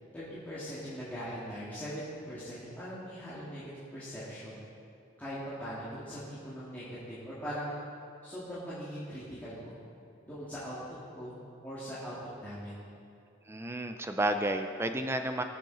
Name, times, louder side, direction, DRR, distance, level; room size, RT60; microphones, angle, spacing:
voice 1, 0.1-4.6 5.2-7.8 8.2-9.7 10.2-10.7 11.2-11.3 11.6-12.1 12.4-12.8, equal, 10° left, -12 dB, 2.1 m, -41 dB
voice 2, 13.5-15.4, right 1 dB, 10° right, 7 dB, 0.5 m, -31 dB
19.0 x 7.5 x 4.0 m, 2.5 s
head